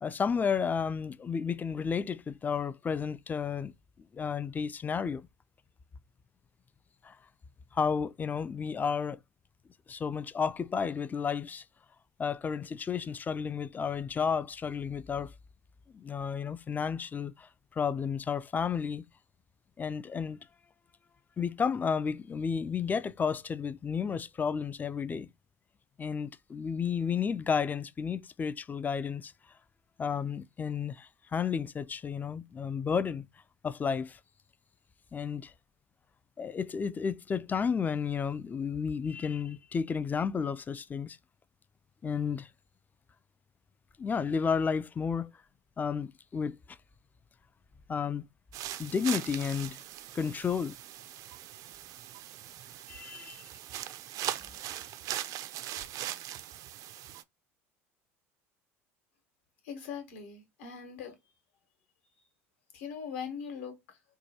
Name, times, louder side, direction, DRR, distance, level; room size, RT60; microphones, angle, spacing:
voice 1, 0.0-3.7 4.1-5.2 7.0-7.1 7.7-9.2 9.9-11.6 12.2-15.3 15.9-17.5 17.8-19.0 19.8-20.4 21.4-25.3 26.0-29.3 30.0-33.3 33.6-34.2 35.1-35.5 36.4-41.2 42.0-42.5 44.0-45.3 45.8-46.6 47.9-48.2 48.8-49.8 50.1-50.7 52.9-53.4, left 6 dB, 25° left, 0.3 m, -32 dB
sound 1, 48.5-57.2, right 12 dB, 50° right, 0.4 m, -40 dB
voice 2, 59.6-61.2 62.7-64.0, left 7 dB, 70° left, 1.2 m, -41 dB
4.6 x 2.3 x 2.8 m
hypercardioid pair, 70°, 7 cm